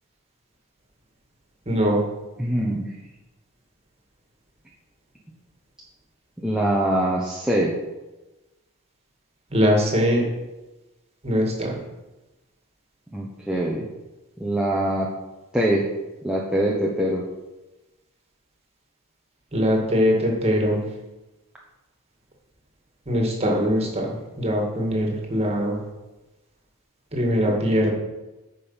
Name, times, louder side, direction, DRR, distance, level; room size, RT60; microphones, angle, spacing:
voice 1, 1.7-2.0 9.5-10.2 11.2-11.8 19.5-20.8 23.1-25.8 27.1-27.9, equal, 25° right, 0 dB, 1.9 m, -22 dB
voice 2, 2.4-2.9 6.4-7.7 13.1-13.9 14.4-15.1 15.5-15.9 16.2-17.2, right 1 dB, 5° right, -4 dB, 0.8 m, -24 dB
9.3 x 5.3 x 5.6 m, 1.1 s
head